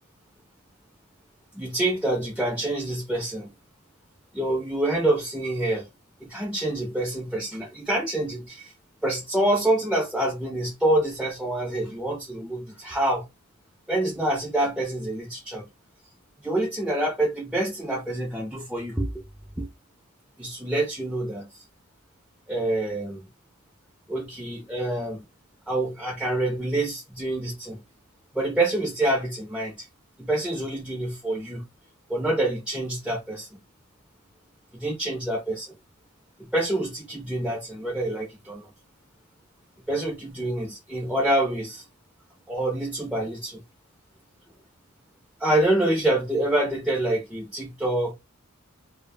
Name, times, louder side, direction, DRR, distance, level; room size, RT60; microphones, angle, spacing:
voice 1, 1.5-3.5 4.3-5.9 6.2-8.7 9.0-13.2 13.9-15.7 16.4-19.1 19.6-19.7 20.4-21.6 22.5-23.3 24.1-25.2 25.7-27.8 28.3-29.9 30.2-31.6 32.1-33.5 34.7-35.7 36.4-38.7 39.9-41.8 42.5-43.6 45.4-48.1, right 1 dB, 5° right, 0.4 m, -26 dB
2.1 x 2.1 x 3.2 m
head